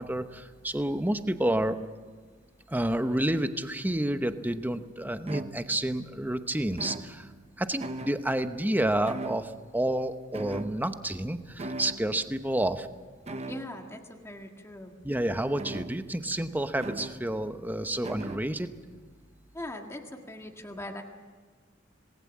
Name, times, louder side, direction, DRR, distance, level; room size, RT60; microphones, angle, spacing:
voice 1, 0.0-1.8 2.7-7.3 7.6-12.9 15.0-18.7, right 1 dB, 10° right, 9 dB, 0.9 m, -29 dB
sound 1, 5.3-6.0 6.7-7.5 7.8-8.5 9.1-9.8 10.3-11.2 11.6-12.1 13.3-13.8 15.6-16.3 16.8-17.3 18.0-18.6, right 2 dB, 35° right, 1.0 m, -39 dB
voice 2, 13.5-14.9 19.5-21.0, left 1 dB, 15° left, 2 dB, 1.7 m, -41 dB
26.5 x 19.0 x 7.4 m, 1.5 s
head